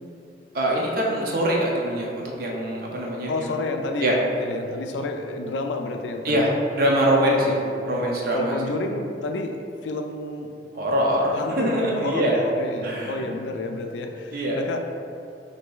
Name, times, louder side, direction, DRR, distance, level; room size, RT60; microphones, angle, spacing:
voice 1, 0.5-3.5 4.0-4.2 6.2-7.5 7.9-8.6 10.7-12.5 12.8-13.2 14.3-14.6, right 1 dB, 55° right, -2 dB, 0.5 m, -23 dB
voice 2, 3.3-6.5 7.3-7.7 8.3-10.6 11.3-14.8, left 2 dB, 90° left, 5 dB, 0.4 m, -30 dB
6.2 x 2.7 x 2.3 m, 2.6 s
head